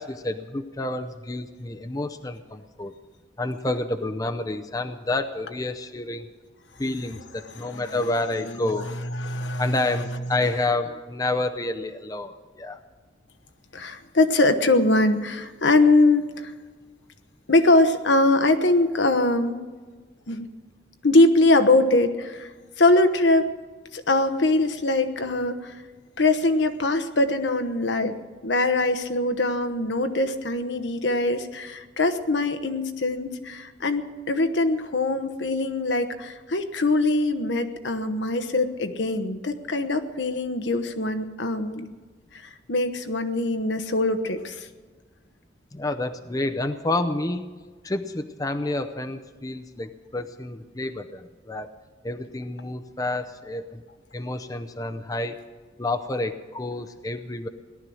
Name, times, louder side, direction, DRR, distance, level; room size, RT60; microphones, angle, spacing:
voice 1, 0.0-2.9 3.4-6.3 6.8-8.9 9.6-12.8 45.7-47.4 47.8-51.7 52.0-53.8 54.1-55.4 55.8-57.5, left 2 dB, 20° left, 7 dB, 0.6 m, -29 dB
voice 2, 7.7-8.7 9.1-10.0 13.7-16.5 17.5-19.6 20.3-20.5 21.0-22.5 22.8-23.4 23.9-25.8 26.2-28.1 28.4-41.9 42.3-42.4 42.7-44.7, left 2 dB, 75° left, 8 dB, 1.1 m, -22 dB
18.0 x 12.0 x 6.3 m, 1.4 s
head